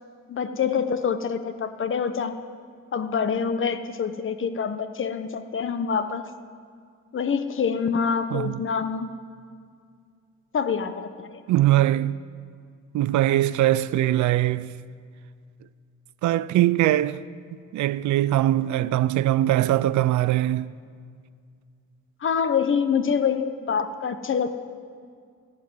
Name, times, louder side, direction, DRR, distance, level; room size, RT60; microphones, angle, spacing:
voice 1, 0.3-2.3 2.9-6.3 7.1-9.1 10.5-11.4 22.2-24.5, left 6 dB, 40° left, 0.9 m, -26 dB
voice 2, 11.5-12.2 12.9-14.8 16.2-17.2 17.7-20.7, right 14 dB, 70° right, 0.5 m, -21 dB
13.5 x 7.4 x 9.5 m
cardioid pair, 90°, 30 cm